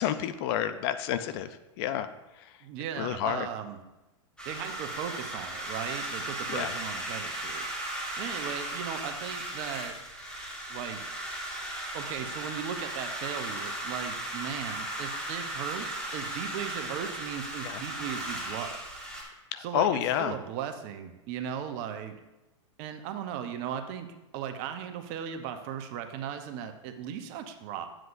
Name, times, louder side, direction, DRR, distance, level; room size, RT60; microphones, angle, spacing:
voice 1, 0.0-2.1 2.4-2.5 3.0-3.5 6.5-6.7 17.6-17.8 19.5-20.4, left 10 dB, 50° left, 12 dB, 0.5 m, -30 dB
voice 2, 2.6-3.8 4.4-7.8 8.2-9.9 10.7-11.1 11.9-18.8 19.6-19.9 20.2-22.2 22.8-24.1 24.3-27.9, right 9 dB, 45° right, 7 dB, 0.8 m, -37 dB
sound 1, 4.4-19.2, right 1 dB, 5° left, 1.9 m, -36 dB
9.4 x 7.5 x 2.6 m, 1.0 s
hypercardioid pair, 115°, 16 cm